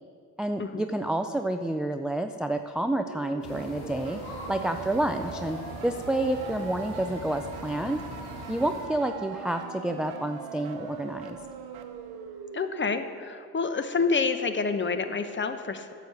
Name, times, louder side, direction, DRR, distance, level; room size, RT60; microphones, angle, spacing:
voice 1, 0.4-4.2 4.5-8.0 8.5-11.4, right 1 dB, ahead, 7 dB, 0.3 m, -29 dB
sound 1, 2.9-12.9, right 7 dB, 70° right, 0.8 m, -41 dB
sound 2, 3.4-8.9, left 1 dB, 80° left, 1.5 m, -42 dB
voice 2, 12.5-15.9, left 4 dB, 30° left, 9 dB, 0.8 m, -28 dB
9.4 x 4.9 x 6.8 m, 2.3 s
supercardioid pair, 50°, 40 cm